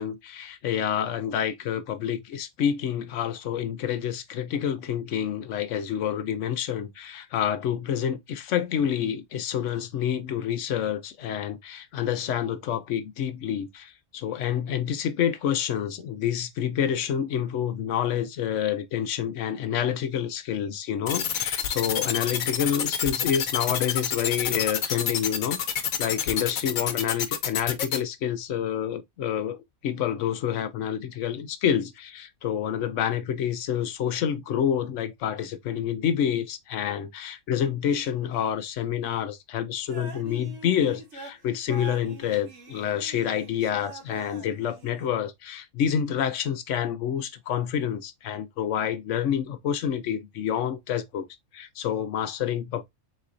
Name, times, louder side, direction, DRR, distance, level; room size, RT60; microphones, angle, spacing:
voice 1, 0.0-51.3 51.5-52.8, left 9 dB, 65° left, 0.9 m, -28 dB
sound 1, 21.1-28.0, left 8 dB, 85° left, 1.2 m, -27 dB
sound 2, 39.9-45.1, right 3 dB, 60° right, 1.3 m, -44 dB
4.3 x 4.0 x 2.5 m
omnidirectional pair, 1.4 m